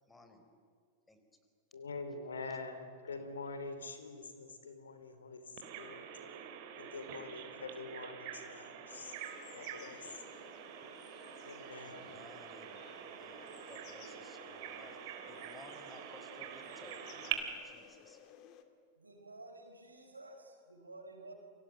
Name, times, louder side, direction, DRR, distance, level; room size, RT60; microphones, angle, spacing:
voice 1, 0.1-0.5 1.1-1.2 2.5-2.6 3.1-3.3 11.8-18.2, left 2 dB, 10° left, 7 dB, 4.3 m, -58 dB
voice 2, 1.7-5.4 5.8-6.0 6.8-9.1 9.5-10.1 11.4-12.1, left 3 dB, 70° left, 9 dB, 3.2 m, -45 dB
Bird vocalization bird call bird song, 5.6-17.3, right 10 dB, 50° right, 3.4 m, -46 dB
sound 1, 8.9-18.6, left 8 dB, 40° left, 2.4 m, -58 dB
voice 3, 19.0-21.3, right 2 dB, 80° right, 4 dB, 5.0 m, -52 dB
29.5 x 24.5 x 7.8 m, 2.2 s
figure-of-eight pair, 90°, 0 cm